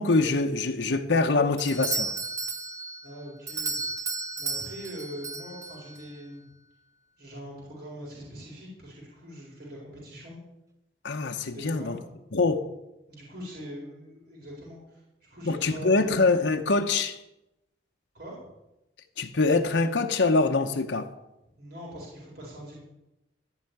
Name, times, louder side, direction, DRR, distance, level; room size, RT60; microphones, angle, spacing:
voice 1, 0.0-2.1 11.0-12.0 12.3-12.6 15.4-17.2 19.2-21.1, left 3 dB, 75° left, 0.9 m, -24 dB
Doorbell, 1.6-6.0, right 3 dB, 20° right, 0.8 m, -33 dB
voice 2, 3.0-3.9 4.4-6.5 7.2-10.4 11.5-12.0 13.1-16.1 18.1-18.5 21.6-22.8, equal, 60° right, 4.3 m, -42 dB
14.0 x 5.7 x 9.2 m
head